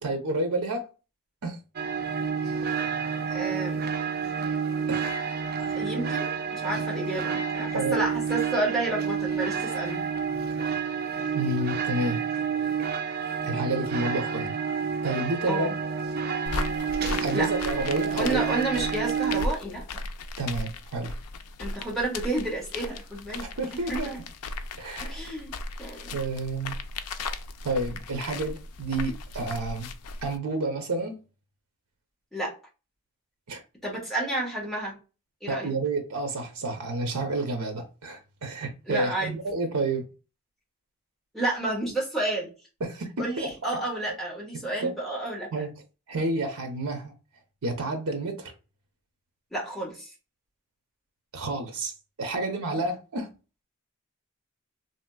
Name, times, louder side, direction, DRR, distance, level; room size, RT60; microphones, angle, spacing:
voice 1, 0.0-0.9 1.4-1.6 2.8-2.9 4.9-5.2 7.7-8.0 10.5-10.6 11.3-12.2 13.4-14.5 15.0-15.7 17.2-18.4 20.4-21.1 23.4-24.1 24.8-25.2 26.1-26.8 27.6-29.9 30.2-31.2 33.5-33.6 35.5-40.1 42.8-43.5 44.5-44.9 45.5-45.7 46.1-47.1 47.6-48.5 51.3-51.9 52.2-53.3, right 2 dB, 80° right, 0.7 m, -30 dB
sound 1, 1.8-19.5, right 6 dB, 45° right, 0.4 m, -29 dB
voice 2, 3.3-3.8 5.6-10.0 15.5-15.7 17.3-17.5 18.1-20.0 21.6-24.0 25.0-25.5 25.8-26.2 32.3-32.5 33.8-35.0 35.4-35.7 38.9-39.3 41.3-42.5 43.2-45.5 49.5-50.1 52.7-52.8, right 2 dB, ahead, 1.2 m, -31 dB
sound 2, 16.5-30.4, left 3 dB, 90° left, 0.4 m, -36 dB
3.4 x 2.8 x 2.2 m
head